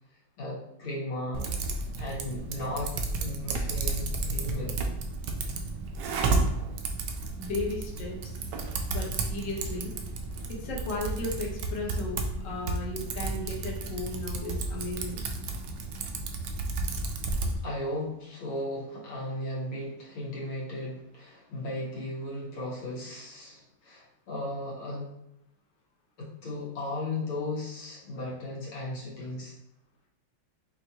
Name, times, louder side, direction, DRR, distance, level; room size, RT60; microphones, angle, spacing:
voice 1, 0.4-1.5 2.0-4.8 17.6-25.1 26.2-29.5, left 1 dB, 80° left, -6 dB, 2.3 m, -36 dB
Typing, 1.3-17.6, right 3 dB, 75° right, 1.1 m, -32 dB
voice 2, 7.4-8.1 8.9-9.9 10.5-15.2, left 2 dB, 50° left, -3 dB, 1.1 m, -35 dB
5.4 x 2.8 x 2.9 m, 0.86 s
omnidirectional pair, 2.2 m